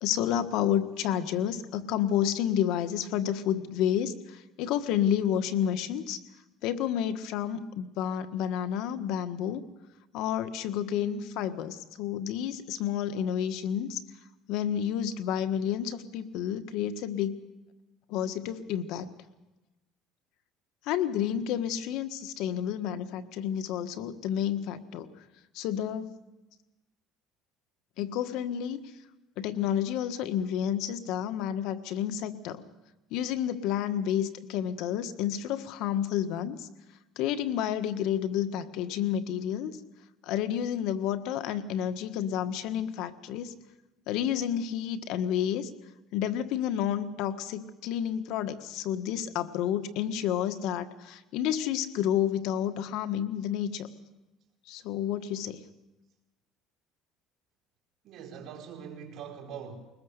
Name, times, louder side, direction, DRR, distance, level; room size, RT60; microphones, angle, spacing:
voice 1, 0.0-4.1 4.6-6.2 6.6-9.6 10.1-14.0 14.5-17.4 18.1-19.1 20.9-25.1 25.5-26.1 28.0-28.8 29.4-32.6 33.1-36.7 37.2-39.7 40.3-43.5 44.1-45.7 46.1-53.9 54.7-55.6, left 10 dB, 70° left, 10 dB, 1.4 m, -30 dB
voice 2, 58.0-59.8, right 7 dB, 50° right, 1 dB, 4.6 m, -42 dB
22.0 x 20.0 x 6.7 m, 1.0 s
cardioid pair, 125°, 0 cm